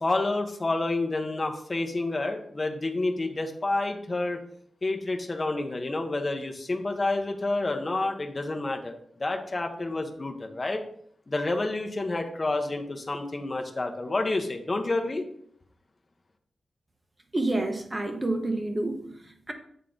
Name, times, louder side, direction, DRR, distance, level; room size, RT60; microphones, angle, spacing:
voice 1, 0.0-4.4 4.8-8.9 9.2-10.8 11.3-15.2, left 2 dB, 30° left, 3 dB, 0.9 m, -29 dB
voice 2, 17.3-19.5, right 2 dB, 20° right, 5 dB, 0.9 m, -29 dB
7.8 x 3.7 x 3.7 m, 0.65 s
wide cardioid pair, 95°, 0 cm